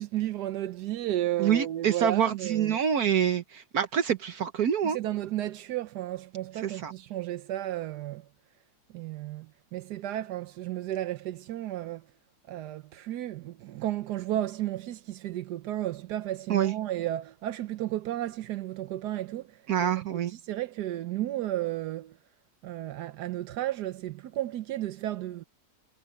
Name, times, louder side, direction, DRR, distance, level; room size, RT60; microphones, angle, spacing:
voice 1, 0.0-2.8 4.8-8.2 8.9-9.5 9.7-12.0 12.5-19.5 19.8-22.1 22.6-25.4, right 13 dB, 85° right, 1.3 m, -33 dB
voice 2, 1.4-5.0 6.6-6.9 16.5-16.7 19.7-20.3, right 8 dB, 70° right, 1.5 m, -26 dB
omnidirectional pair, 1.7 m